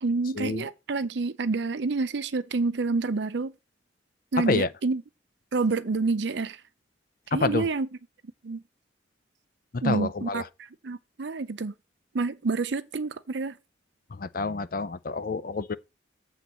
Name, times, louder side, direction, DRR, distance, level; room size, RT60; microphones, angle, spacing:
voice 1, 0.0-3.5 4.3-5.0 5.5-6.6 7.3-7.9 8.4-8.6 9.8-11.7 12.1-13.6, right 3 dB, 65° right, 0.6 m, -28 dB
voice 2, 7.3-7.7 9.7-10.5 14.1-15.8, left 3 dB, 45° left, 0.5 m, -28 dB
7.8 x 4.0 x 6.8 m
head